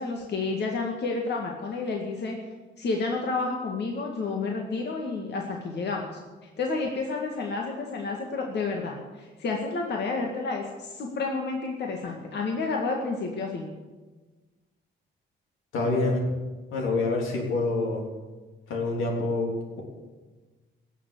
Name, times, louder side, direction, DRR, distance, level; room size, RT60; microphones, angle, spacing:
voice 1, 0.0-2.4 2.8-6.1 6.6-13.7, left 3 dB, 60° left, 1 dB, 2.0 m, -30 dB
voice 2, 15.7-16.3 16.7-18.0 18.7-19.8, left 2 dB, 85° left, 0 dB, 3.5 m, -26 dB
17.0 x 7.1 x 8.5 m, 1.3 s
cardioid pair, 90°, 20 cm